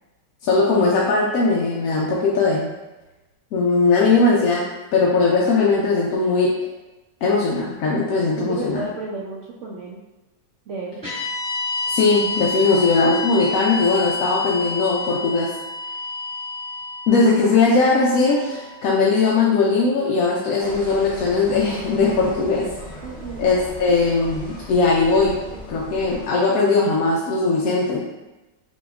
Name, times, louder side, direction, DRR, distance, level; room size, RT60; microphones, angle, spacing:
voice 1, 0.4-2.7 3.5-4.6 4.9-6.5 7.2-8.8 11.9-15.5 17.1-22.7 23.4-25.3 25.7-28.0, left 3 dB, 70° left, -4 dB, 0.9 m, -19 dB
voice 2, 8.4-10.0 10.7-11.0 12.7-12.8 23.0-23.5, right 3 dB, 75° right, -4 dB, 0.6 m, -32 dB
sound 1, 11.0-19.3, left 3 dB, 10° right, 1.3 m, -29 dB
sound 2, 20.6-26.2, equal, 40° left, 1.7 m, -37 dB
6.1 x 2.8 x 2.3 m, 1.0 s
omnidirectional pair, 1.9 m